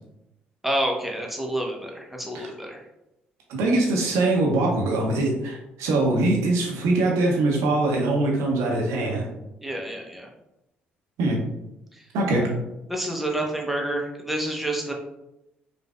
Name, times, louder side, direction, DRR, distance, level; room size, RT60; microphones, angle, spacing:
voice 1, 0.6-2.8 9.6-10.3 12.9-14.9, right 1 dB, ahead, 0 dB, 0.8 m, -28 dB
voice 2, 3.5-9.3 11.2-11.4 12.1-12.5, right 2 dB, 65° right, -1 dB, 0.8 m, -22 dB
5.0 x 2.5 x 2.3 m, 0.90 s
figure-of-eight pair, 45°, 5 cm